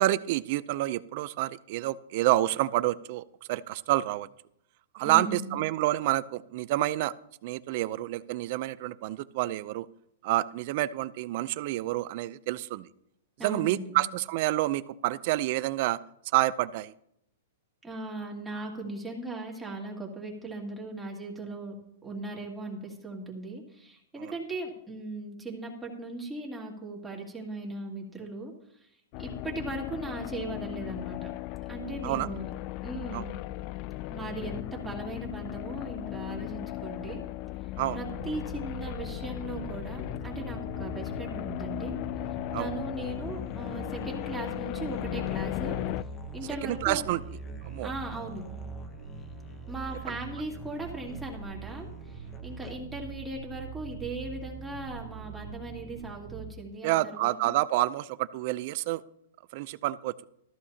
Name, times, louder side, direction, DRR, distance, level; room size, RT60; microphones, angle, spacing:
voice 1, 0.0-4.3 4.9-7.1 7.4-9.9 10.2-12.9 13.4-16.0 16.3-16.9 24.2-24.3 32.0-32.3 33.1-33.2 37.8-38.0 42.5-42.7 46.6-47.2 47.6-47.9 56.8-59.0 59.5-60.1, right 16 dB, 50° right, 16 dB, 0.5 m, -28 dB
voice 2, 5.0-5.6 13.4-14.0 17.8-21.7 22.0-28.9 29.2-31.3 31.7-32.5 32.8-33.3 34.1-37.2 37.9-42.0 42.6-46.1 46.3-47.0 47.8-48.5 49.7-57.6, right 2 dB, 10° right, -2 dB, 2.4 m, -38 dB
sound 1, 29.1-46.0, left 17 dB, 40° left, 0.3 m, -36 dB
sound 2, 38.0-56.5, right 6 dB, 75° right, 1.7 m, -43 dB
Musical instrument, 42.9-53.1, left 6 dB, 20° left, 1.0 m, -49 dB
14.0 x 14.0 x 2.9 m, 0.75 s
hypercardioid pair, 140°, 0 cm